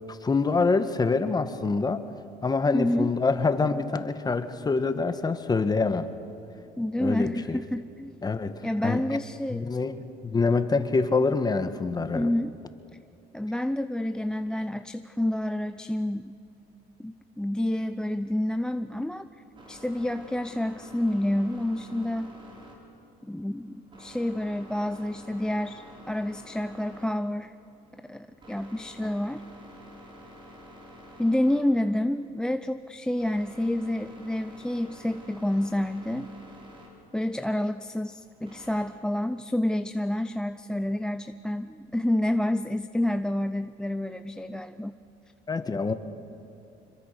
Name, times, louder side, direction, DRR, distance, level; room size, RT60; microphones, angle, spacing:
voice 1, 0.1-2.0 2.4-6.1 7.0-7.6 8.2-9.2 9.5-12.3 45.5-45.9, left 4 dB, 25° left, 10 dB, 1.4 m, -26 dB
voice 2, 2.7-3.1 6.8-8.1 8.6-9.7 12.1-12.5 13.3-16.4 17.0-19.2 19.7-22.3 23.2-27.5 27.9-29.4 31.2-36.3 37.1-45.0, left 1 dB, 5° left, 12 dB, 0.6 m, -29 dB
sound 1, 19.2-38.8, equal, 30° right, 5.8 m, -50 dB
26.5 x 22.5 x 6.7 m, 2.7 s
cardioid pair, 110°, 17 cm